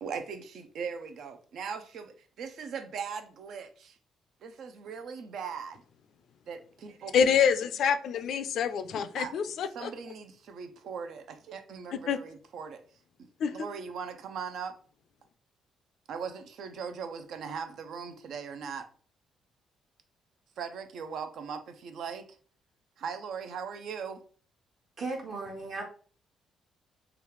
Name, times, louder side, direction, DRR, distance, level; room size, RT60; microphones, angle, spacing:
voice 1, 0.0-4.0 4.4-5.8 6.5-7.2 9.2-9.3 9.6-12.8 13.5-14.7 16.1-18.9 20.6-22.3 23.0-24.2, right 6 dB, 70° right, 0.5 m, -39 dB
voice 2, 7.1-9.9 12.1-12.2 13.4-13.5, left 7 dB, 70° left, 0.3 m, -26 dB
voice 3, 25.0-25.8, right 3 dB, 50° right, 1.0 m, -36 dB
3.1 x 2.4 x 3.1 m
cardioid pair, 90°, 0 cm